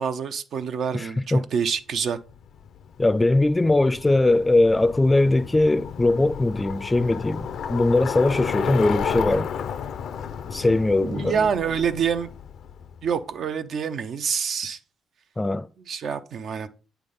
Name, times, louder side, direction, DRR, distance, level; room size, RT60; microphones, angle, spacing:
voice 1, 0.0-2.2 10.9-12.3 13.0-14.8 15.9-16.7, right 7 dB, 65° right, 0.6 m, -27 dB
voice 2, 0.9-1.4 3.0-9.5 10.5-11.3 15.4-15.7, left 2 dB, 15° left, 0.5 m, -20 dB
Bicycle, 2.3-13.2, left 7 dB, 70° left, 0.5 m, -33 dB
8.5 x 3.5 x 5.5 m
cardioid pair, 90°, 0 cm